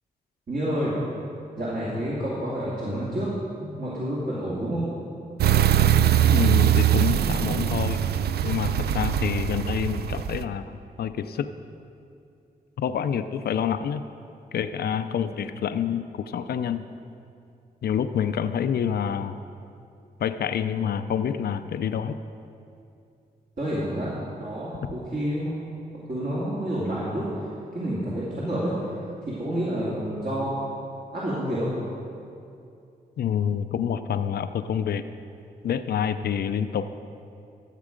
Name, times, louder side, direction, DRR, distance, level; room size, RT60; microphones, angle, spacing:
voice 1, 0.5-0.9 1.6-3.3 3.6-4.9 23.6-24.1 24.4-25.5 26.1-30.6 31.1-31.7, equal, 55° right, -8 dB, 2.5 m, -29 dB
sound 1, 5.4-10.4, right 11 dB, 80° right, 0.4 m, -22 dB
voice 2, 6.3-8.0 8.4-11.5 12.8-14.0 14.5-16.8 17.8-19.4 20.2-22.2 33.2-35.1 35.6-36.9, left 8 dB, 75° left, 10 dB, 0.5 m, -27 dB
13.5 x 7.4 x 5.1 m, 2.5 s
cardioid pair, 75°, 16 cm